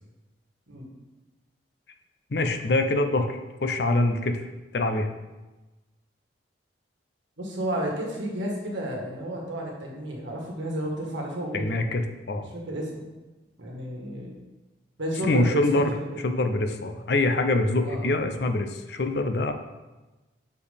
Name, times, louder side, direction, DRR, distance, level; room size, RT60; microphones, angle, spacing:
voice 1, 2.3-4.4 4.7-5.1 11.5-12.5 15.2-15.9 16.2-19.5, left 2 dB, 60° left, 7 dB, 0.6 m, -24 dB
voice 2, 7.4-11.7 12.5-12.9 13.6-14.3 15.0-16.2 17.8-18.0, equal, 85° right, -2 dB, 1.6 m, -32 dB
7.0 x 4.5 x 3.4 m, 1.1 s
head